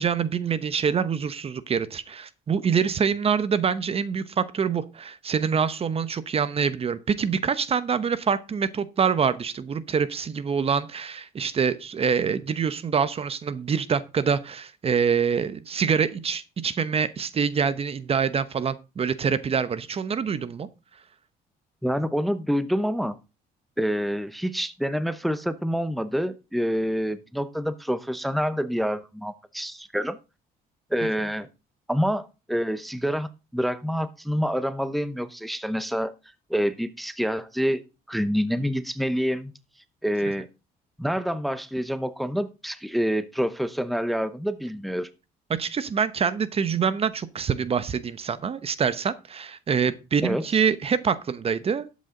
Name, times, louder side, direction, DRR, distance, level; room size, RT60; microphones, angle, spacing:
voice 1, 0.0-20.7 45.5-51.9, right 6 dB, 35° right, 1.0 m, -25 dB
voice 2, 21.8-23.2 23.8-30.2 30.9-31.5 31.9-36.1 36.5-37.8 38.1-39.5 40.0-40.5 41.0-45.1 50.2-50.5, equal, ahead, 0.9 m, -27 dB
12.0 x 8.4 x 3.8 m
cardioid pair, 110°, 17 cm